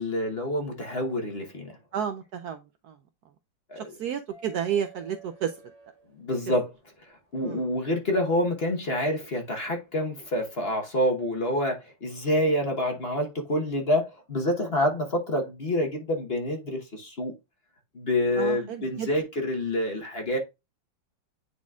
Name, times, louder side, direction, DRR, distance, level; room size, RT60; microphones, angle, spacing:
voice 1, 0.0-1.7 3.7-3.9 6.2-6.7 7.0-17.3 17.9-20.4, left 1 dB, 35° left, 1.1 m, -27 dB
voice 2, 1.9-2.6 2.9-3.0 3.8-5.5 7.4-7.6 18.4-19.1, right 8 dB, 70° right, 0.9 m, -31 dB
sound 1, 4.3-6.7 8.4-8.5 10.2-10.4, right 5 dB, 20° right, 1.6 m, -50 dB
9.6 x 4.1 x 2.4 m
omnidirectional pair, 2.1 m